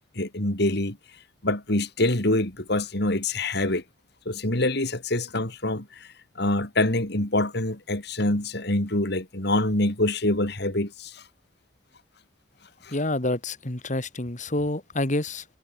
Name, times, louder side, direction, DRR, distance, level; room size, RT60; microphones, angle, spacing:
voice 1, 0.1-1.0 1.4-3.8 4.2-11.2 12.8-12.9, left 1 dB, 60° left, 3.5 m, -25 dB
voice 2, 12.9-15.4, left 2 dB, 40° left, 2.2 m, -28 dB
head